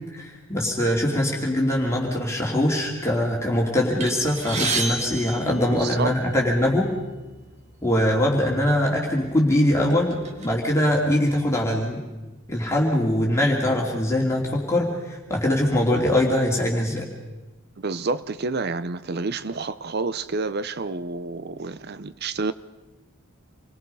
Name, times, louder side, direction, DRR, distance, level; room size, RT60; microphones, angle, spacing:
voice 1, 0.1-6.9 7.8-12.0 12.5-17.1, left 1 dB, 15° left, 2.8 m, -22 dB
sound 1, 4.0-6.3 7.2-7.3 7.6-7.8 8.6-8.8 9.3-10.5, right 3 dB, 35° right, 2.3 m, -30 dB
voice 2, 5.5-6.1 17.8-22.5, right 3 dB, 50° right, 0.6 m, -29 dB
27.5 x 21.5 x 5.5 m
head